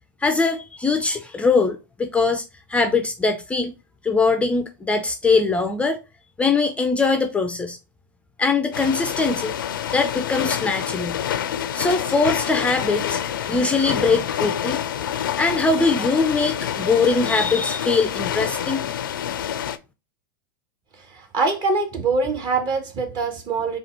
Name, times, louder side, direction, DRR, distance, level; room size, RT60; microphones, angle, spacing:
voice 1, 0.2-2.4 2.7-3.7 4.0-6.0 6.4-7.8 8.4-9.5 9.9-11.2 11.7-13.2 13.5-14.8 15.4-18.8, left 4 dB, 10° left, 0.4 m, -21 dB
sound 1, 8.7-19.8, left 10 dB, 80° left, 0.4 m, -27 dB
voice 2, 21.0-23.8, right 3 dB, 40° right, 1.3 m, -24 dB
4.0 x 2.4 x 4.2 m
hypercardioid pair, 105°, 11 cm